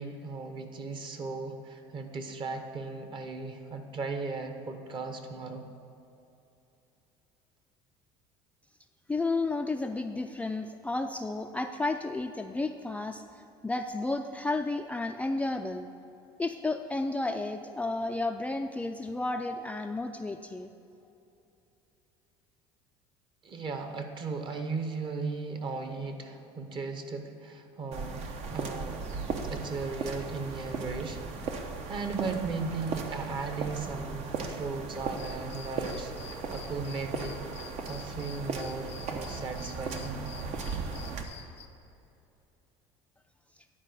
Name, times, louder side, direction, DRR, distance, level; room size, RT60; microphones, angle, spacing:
voice 1, 0.0-5.6 23.4-28.3 28.5-31.6 31.9-37.4 37.9-40.1, right 4 dB, 40° right, 6 dB, 1.1 m, -37 dB
voice 2, 9.1-13.2 13.6-15.9 16.4-20.7, left 2 dB, 10° left, 5 dB, 0.3 m, -32 dB
sound 1, 27.9-41.2, right 4 dB, 60° right, 0.9 m, -37 dB
sound 2, 35.0-41.7, left 8 dB, 55° left, 0.6 m, -50 dB
10.0 x 4.7 x 6.5 m, 2.8 s
supercardioid pair, 90°, 13 cm